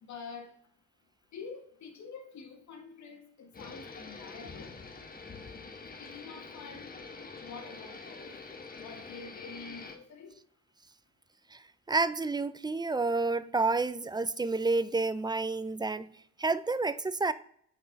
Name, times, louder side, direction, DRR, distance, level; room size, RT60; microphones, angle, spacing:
voice 1, 0.1-0.5 1.3-4.8 6.0-6.9 7.4-8.4 8.8-10.3, left 5 dB, 70° left, 1.8 m, -47 dB
sound 1, 3.5-10.0, left 4 dB, 30° left, 1.2 m, -46 dB
voice 2, 11.9-16.0 16.4-17.3, right 3 dB, 15° right, 0.4 m, -29 dB
8.4 x 4.7 x 5.2 m
cardioid pair, 90°, 30 cm